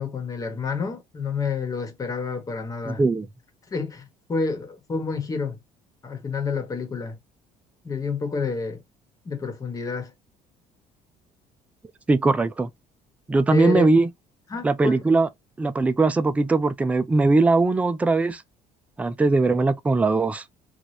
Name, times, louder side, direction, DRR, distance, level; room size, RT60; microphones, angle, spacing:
voice 1, 0.0-3.0 3.7-5.6 6.0-7.2 7.8-8.8 9.2-10.1 13.5-13.9 14.5-15.0, left 4 dB, 25° left, 1.3 m, -29 dB
voice 2, 2.9-3.3 12.1-12.7 13.3-14.1 14.6-15.3 15.6-18.4 19.0-20.4, right 3 dB, 10° right, 0.4 m, -20 dB
4.8 x 2.5 x 2.8 m
cardioid pair, 160°, 14 cm